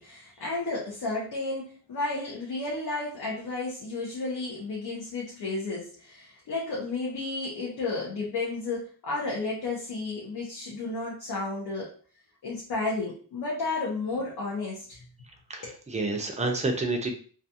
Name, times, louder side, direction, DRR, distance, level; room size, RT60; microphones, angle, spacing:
voice 1, 0.0-11.9 12.4-15.1 15.6-15.8, left 3 dB, 75° left, -4 dB, 0.8 m, -32 dB
voice 2, 15.5-17.1, right 2 dB, 20° right, 3 dB, 0.3 m, -29 dB
2.4 x 2.3 x 2.7 m, 0.43 s
wide cardioid pair, 170°, 38 cm